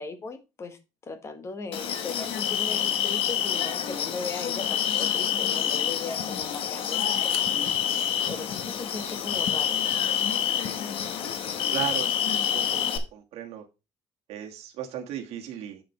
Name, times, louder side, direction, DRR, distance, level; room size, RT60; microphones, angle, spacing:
voice 1, 0.0-7.5 8.3-9.8, left 3 dB, 25° left, 1.2 m, -38 dB
sound 1, 1.7-13.0, left 9 dB, 55° left, 1.2 m, -27 dB
voice 2, 11.7-12.8 13.1-13.6 14.3-15.8, right 11 dB, 65° right, 1.5 m, -36 dB
7.8 x 7.5 x 3.1 m
cardioid pair, 175°, 11 cm